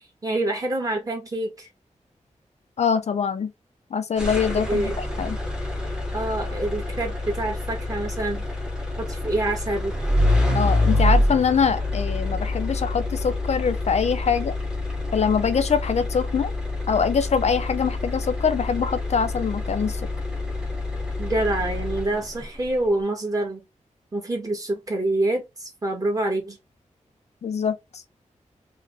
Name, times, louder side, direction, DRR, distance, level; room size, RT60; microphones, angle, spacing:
voice 1, 0.2-1.7 4.5-4.9 6.1-8.5 9.0-9.9 21.2-23.6 24.1-26.6, right 2 dB, 30° right, 1.3 m, -26 dB
voice 2, 2.8-3.5 3.9-5.4 10.5-14.5 15.1-16.5 16.9-20.0 27.4-28.0, left 6 dB, 60° left, 0.4 m, -24 dB
sound 1, 4.2-22.4, left 2 dB, 5° right, 0.8 m, -26 dB
3.4 x 2.1 x 3.5 m
wide cardioid pair, 135°, 13 cm